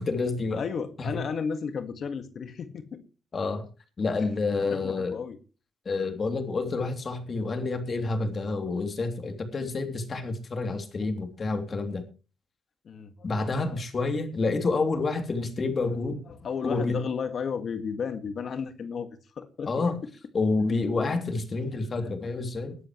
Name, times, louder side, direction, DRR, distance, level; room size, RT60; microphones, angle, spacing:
voice 1, 0.0-0.6 1.0-1.1 3.3-3.6 4.0-5.2 5.8-12.0 13.2-16.2 16.6-17.0 19.6-20.0 20.3-22.8, left 3 dB, 40° left, 6 dB, 3.0 m, -28 dB
voice 2, 0.5-3.0 4.2-4.3 4.6-5.4 12.8-13.3 13.7-13.8 16.3-19.1 19.3-19.7 20.0-20.1 21.8-22.1, left 6 dB, 55° left, 9 dB, 1.8 m, -33 dB
20.0 x 11.5 x 3.1 m, 0.34 s
cardioid pair, 90°, 0 cm